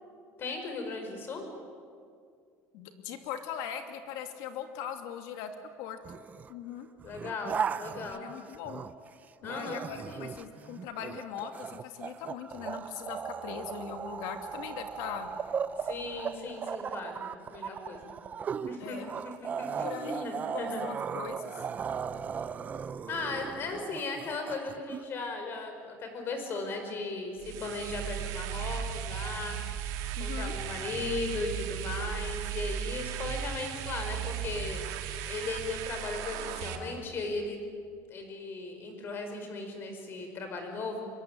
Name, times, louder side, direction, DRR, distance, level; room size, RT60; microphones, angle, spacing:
voice 1, 0.4-1.5 7.0-8.3 9.4-10.3 15.8-18.1 18.6-19.0 19.2-20.9 23.1-29.6 30.2-34.8 35.3-37.6 38.1-41.1, left 3 dB, 35° left, 5 dB, 5.2 m, -37 dB
voice 2, 2.7-5.5 5.8-6.0 6.5-6.9 8.1-8.8 9.4-15.3 18.8-19.1 19.8-21.4 30.2-30.6, left 8 dB, 80° left, 6 dB, 2.8 m, -40 dB
sound 1, 6.0-6.5 7.0-9.1 9.4-25.0, right 7 dB, 25° right, 0.6 m, -37 dB
sound 2, 27.4-36.8, right 9 dB, 70° right, 2.9 m, -36 dB
25.5 x 22.5 x 9.2 m, 2.2 s
cardioid pair, 165°, 6 cm